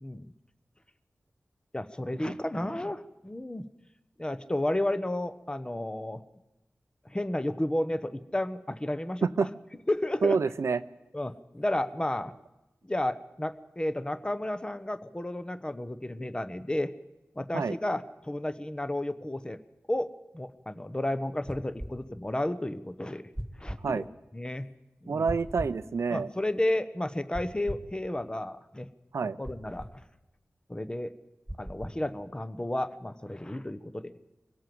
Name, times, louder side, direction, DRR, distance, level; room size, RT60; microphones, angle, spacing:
voice 1, 0.0-0.3 1.7-3.7 4.2-6.2 7.1-9.5 9.9-10.4 11.1-12.3 12.9-16.9 17.3-19.6 19.9-23.2 23.6-24.0 24.3-24.7 25.0-25.2 26.1-28.9 29.4-29.9 30.7-31.1 31.6-34.1, left 1 dB, 20° left, 12 dB, 1.1 m, -32 dB
voice 2, 10.2-10.8 17.5-17.7 23.8-24.1 25.1-26.3 29.1-29.4, right 5 dB, 90° right, 14 dB, 0.7 m, -27 dB
sound 1, 21.5-21.9 23.4-23.8 25.3-25.8 27.3-27.9 29.4-29.9 31.5-32.0, equal, 5° right, 2.2 m, -38 dB
24.0 x 16.5 x 7.8 m, 0.99 s
cardioid pair, 50°, 5 cm